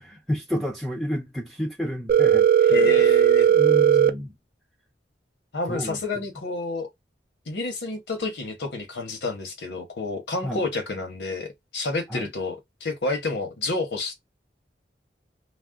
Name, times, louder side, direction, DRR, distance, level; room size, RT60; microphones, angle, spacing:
voice 1, 0.3-2.5 2.7-2.9 3.5-4.3 5.7-6.2 10.4-10.6 12.1-12.3, equal, ahead, 0.5 m, -30 dB
Telephone, 2.1-4.1, right 9 dB, 55° right, 0.4 m, -17 dB
voice 2, 2.7-3.5 5.5-6.9 7.5-11.5 11.7-14.1, left 3 dB, 75° left, 0.9 m, -29 dB
2.4 x 2.1 x 3.5 m
head